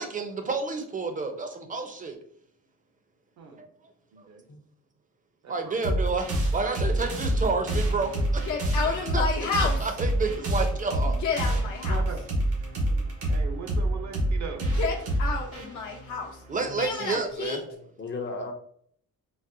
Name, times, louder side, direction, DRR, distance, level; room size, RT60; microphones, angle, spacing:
voice 1, 0.0-2.2 5.5-11.2 16.5-17.6, right 4 dB, 25° right, 5 dB, 0.5 m, -30 dB
voice 2, 4.1-4.4 5.4-6.4 11.9-12.2 13.3-14.7, right 5 dB, 65° right, 5 dB, 0.7 m, -40 dB
sound 1, 5.8-16.9, right 1 dB, 90° right, 1.1 m, -27 dB
Yell, 8.4-10.0 11.0-12.0 14.6-16.4 16.8-17.6, left 5 dB, 70° left, 0.8 m, -30 dB
voice 3, 16.7-17.1 17.7-18.5, left 3 dB, 40° left, 4 dB, 0.6 m, -38 dB
4.0 x 2.1 x 2.5 m, 0.64 s
cardioid pair, 90°, 30 cm